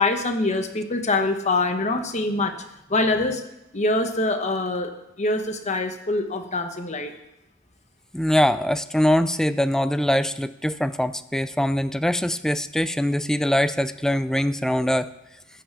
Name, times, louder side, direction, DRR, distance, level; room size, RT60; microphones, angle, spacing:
voice 1, 0.0-2.5 2.9-3.4 3.7-4.9 5.2-7.1, left 2 dB, 35° left, 6 dB, 1.2 m, -24 dB
voice 2, 8.1-15.1, left 1 dB, 5° left, 13 dB, 0.4 m, -23 dB
13.0 x 5.8 x 8.2 m, 0.88 s
head